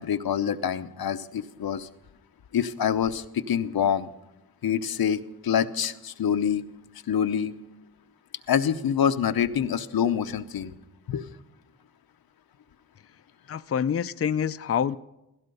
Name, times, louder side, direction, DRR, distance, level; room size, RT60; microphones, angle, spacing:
voice 1, 0.0-1.9 2.5-4.1 4.6-6.6 7.1-7.5 8.5-10.7 11.1-11.2, left 8 dB, 90° left, 9 dB, 0.8 m, -26 dB
voice 2, 13.5-15.0, left 8 dB, 40° left, 11 dB, 0.5 m, -26 dB
17.0 x 15.5 x 5.5 m, 0.93 s
wide cardioid pair, 85°, 35 cm